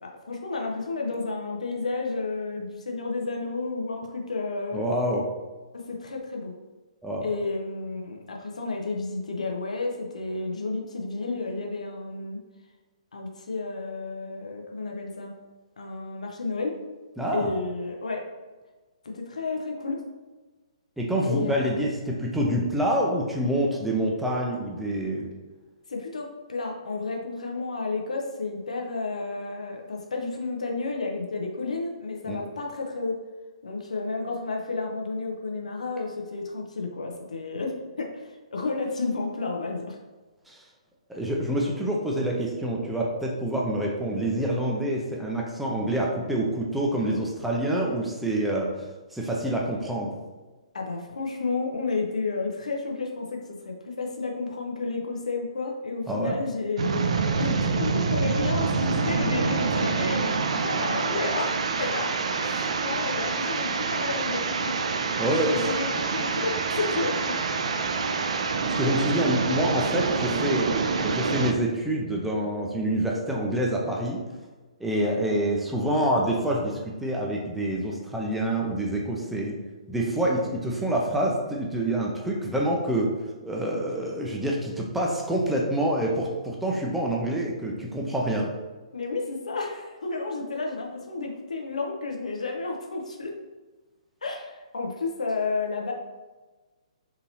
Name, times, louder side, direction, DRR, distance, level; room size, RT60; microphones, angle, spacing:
voice 1, 0.0-4.8 5.7-6.5 7.2-12.4 13.1-15.4 15.8-16.8 17.3-18.3 19.1-20.0 21.3-21.7 25.9-33.2 33.6-40.0 50.7-60.3 60.6-62.1 62.4-64.8 65.3-67.4 75.0-75.2 88.9-93.3 94.2-95.9, left 3 dB, 75° left, 1 dB, 0.6 m, -31 dB
voice 2, 4.7-5.2 7.0-7.3 17.2-17.5 21.0-25.3 32.3-32.4 40.5-40.6 41.1-50.1 56.1-56.4 59.7-59.8 65.2-65.5 68.8-74.2 74.8-79.6 79.9-83.1 83.4-88.5, right 1 dB, 5° right, -3 dB, 0.4 m, -27 dB
sound 1, 56.8-71.5, right 4 dB, 65° right, 0.4 m, -26 dB
3.8 x 2.7 x 2.8 m, 1.3 s
figure-of-eight pair, 130°, 4 cm